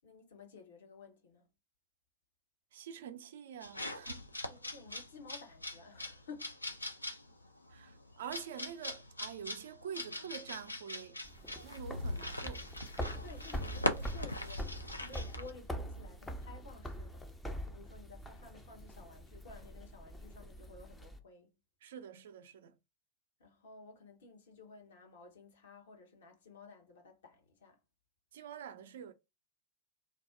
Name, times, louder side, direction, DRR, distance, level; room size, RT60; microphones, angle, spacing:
voice 1, 0.0-1.5 4.5-6.8 13.2-17.3 17.6-21.5 23.4-27.8, left 4 dB, 60° left, 0.8 m, -54 dB
voice 2, 2.7-4.3 7.7-11.2 11.6-12.7 21.8-22.8 28.3-29.1, right 8 dB, 60° right, 0.4 m, -46 dB
sound 1, 3.6-15.5, left 1 dB, 85° left, 0.4 m, -41 dB
sound 2, 11.2-21.2, equal, 10° left, 0.4 m, -44 dB
2.4 x 2.0 x 3.5 m
figure-of-eight pair, 90°, 0 cm